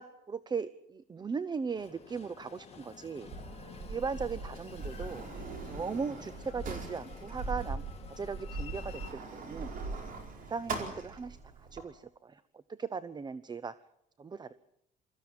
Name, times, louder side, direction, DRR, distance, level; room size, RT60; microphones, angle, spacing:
voice 1, 0.0-3.3 3.9-5.3 5.7-7.8 8.1-9.7 10.5-11.4 11.7-12.4 12.7-13.7 14.2-14.5, right 5 dB, 25° right, 16 dB, 0.7 m, -38 dB
Train, 1.7-9.1, left 6 dB, 35° left, 2.6 m, -50 dB
Sliding door, 3.2-11.8, right 3 dB, 55° right, 4.5 m, -41 dB
23.0 x 14.5 x 8.9 m, 0.79 s
cardioid pair, 110°, 17 cm